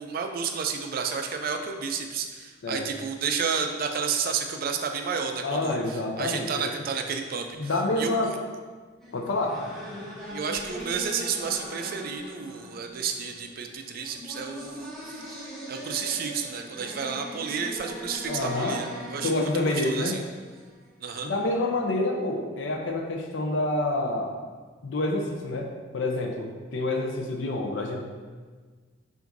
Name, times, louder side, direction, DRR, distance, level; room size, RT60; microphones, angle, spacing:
voice 1, 0.0-7.7 8.0-8.3 10.3-20.2 21.0-21.3, right 6 dB, 50° right, 5 dB, 0.4 m, -31 dB
voice 2, 5.4-6.7 7.5-8.4 9.1-9.6 18.3-18.8 19.2-20.2 21.2-24.3 24.8-28.0, left 2 dB, 75° left, 2 dB, 0.5 m, -28 dB
sound 1, 9.0-20.9, equal, ahead, 0.9 m, -41 dB
5.9 x 2.5 x 2.6 m, 1.4 s
head